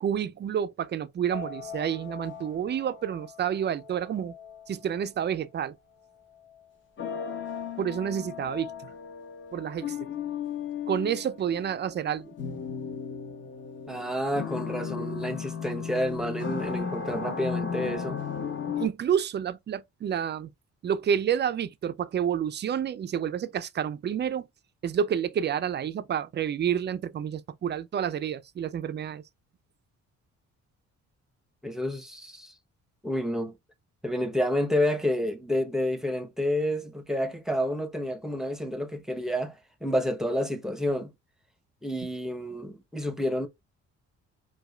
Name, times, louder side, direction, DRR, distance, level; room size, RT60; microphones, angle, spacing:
voice 1, 0.0-4.3 4.7-5.7 7.8-8.9 9.5-10.0 10.9-12.3 18.8-20.5 20.8-24.5 24.8-29.2, right 8 dB, 35° right, 0.4 m, -29 dB
sound 1, 1.3-5.1 7.0-18.9, left 6 dB, 40° left, 1.1 m, -36 dB
voice 2, 13.9-18.2 31.6-32.5 33.0-33.5 34.0-39.5 39.8-41.1 41.8-43.5, left 1 dB, ahead, 0.8 m, -29 dB
4.7 x 2.3 x 2.2 m
cardioid pair, 90°, 30 cm